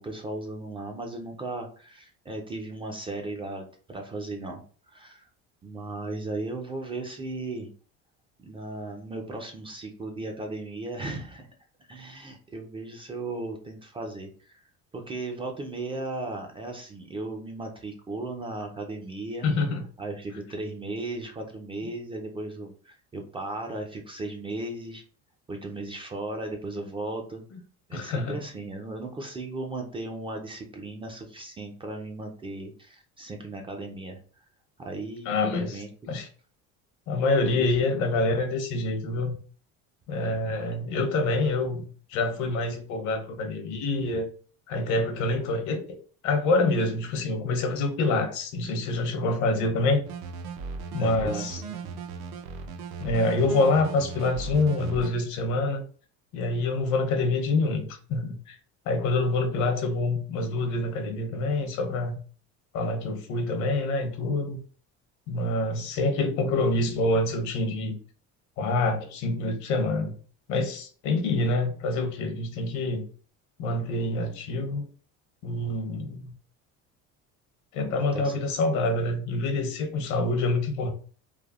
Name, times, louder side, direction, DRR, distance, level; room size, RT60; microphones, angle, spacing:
voice 1, 0.0-5.3 5.6-7.7 8.4-11.5 11.9-19.5 20.0-25.0 25.5-27.4 27.9-34.2 34.8-36.1 37.5-37.7 40.3-40.4 50.9-52.0 77.9-78.3, right 2 dB, 20° right, 2 dB, 0.3 m, -36 dB
voice 2, 19.4-19.8 27.9-28.4 35.3-35.8 36.1-36.3 37.1-39.4 40.1-44.3 44.7-45.8 46.2-50.0 50.9-51.6 53.0-55.8 56.3-58.6 58.9-62.2 62.7-64.6 65.3-68.0 68.6-70.1 70.5-73.0 73.6-74.9 75.4-76.3 77.7-80.9, left 2 dB, 65° left, 6 dB, 0.8 m, -26 dB
sound 1, 50.1-55.1, right 5 dB, 65° right, 0.5 m, -37 dB
3.3 x 2.0 x 2.3 m, 0.41 s
cardioid pair, 125°, 31 cm